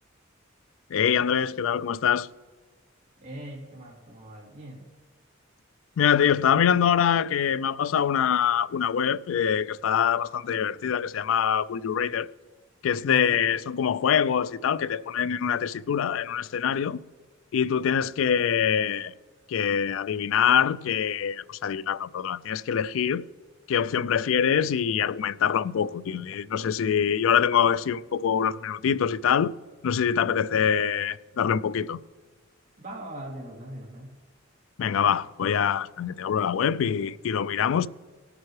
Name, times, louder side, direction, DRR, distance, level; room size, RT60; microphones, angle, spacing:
voice 1, 0.9-2.3 6.0-12.3 12.8-17.0 17.5-19.1 19.5-23.2 23.7-29.5 29.8-32.0 34.8-37.9, left 8 dB, 75° left, 0.3 m, -24 dB
voice 2, 3.2-4.9 13.0-13.4 32.8-34.1, right 1 dB, 45° right, 2.9 m, -40 dB
19.0 x 8.8 x 3.2 m
head